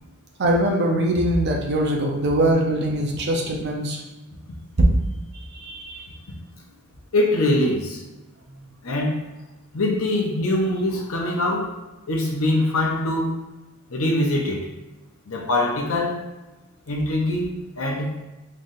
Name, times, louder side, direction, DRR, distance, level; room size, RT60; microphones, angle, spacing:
voice 1, 0.4-4.0 5.3-6.1, right 1 dB, 50° right, 0 dB, 0.7 m, -22 dB
voice 2, 7.1-8.0 8.8-9.3 9.7-11.7 12.1-13.4 13.9-14.7 15.3-16.3 16.9-18.2, left 1 dB, 80° left, 0 dB, 0.8 m, -23 dB
4.0 x 3.2 x 2.6 m, 1.1 s
head